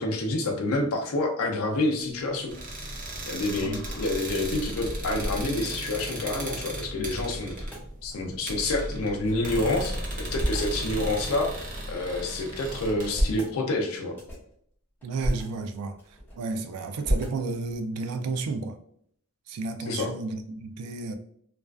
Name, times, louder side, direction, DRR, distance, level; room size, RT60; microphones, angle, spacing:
voice 1, 0.0-2.5 3.3-7.6 8.0-14.2 19.9-20.1, left 2 dB, 70° left, 0.5 m, -28 dB
sound 1, 2.5-13.1, right 1 dB, 35° right, 0.6 m, -36 dB
sound 2, 3.1-6.6 6.9-7.0 7.3-7.9 8.5-9.6 10.0-10.8 11.4-12.3 12.8-13.5 14.1-14.5 15.0-15.4 15.9-16.6 17.0-17.8, equal, 10° left, 0.8 m, -33 dB
voice 2, 15.0-18.8 19.5-21.1, right 3 dB, 90° right, 0.3 m, -32 dB
2.4 x 2.2 x 2.3 m
head